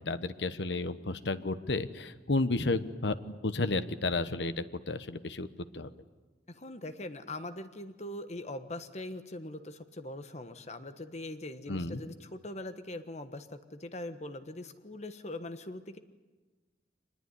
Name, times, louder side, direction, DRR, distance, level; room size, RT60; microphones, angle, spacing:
voice 1, 0.0-5.9 11.7-12.0, left 2 dB, 80° left, 12 dB, 1.1 m, -32 dB
voice 2, 6.5-16.0, left 1 dB, 40° left, 10 dB, 1.3 m, -42 dB
24.5 x 20.5 x 9.8 m, 1.2 s
head